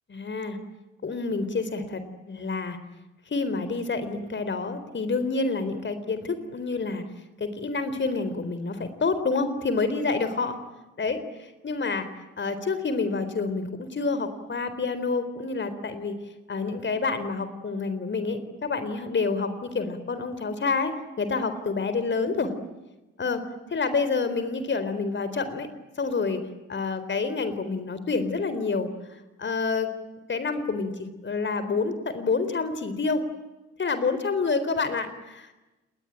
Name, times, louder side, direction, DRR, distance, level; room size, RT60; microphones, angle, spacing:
voice 1, 0.1-0.6 1.0-2.0 2.3-2.8 3.3-7.0 7.4-10.6 11.0-12.1 12.4-16.2 16.5-22.5 23.2-23.4 23.7-25.7 26.0-26.4 26.7-29.9 30.3-33.2 33.8-35.5, left 4 dB, 30° left, 11 dB, 4.0 m, -28 dB
30.0 x 20.5 x 9.0 m, 1.1 s
figure-of-eight pair, 50°, 35 cm